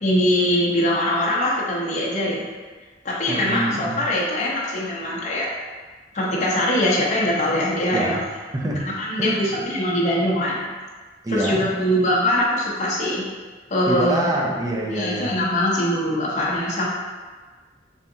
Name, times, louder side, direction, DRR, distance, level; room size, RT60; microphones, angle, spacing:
voice 1, 0.0-2.4 3.0-5.5 6.1-8.2 9.0-10.7 11.3-13.2 13.7-14.4 14.9-16.8, left 1 dB, 40° left, -5 dB, 0.6 m, -22 dB
voice 2, 3.3-4.1 7.9-8.2 8.5-8.9 9.2-9.4 11.2-11.6 13.9-15.3, right 1 dB, 20° right, -1 dB, 0.4 m, -25 dB
3.4 x 2.7 x 2.6 m, 1.4 s
head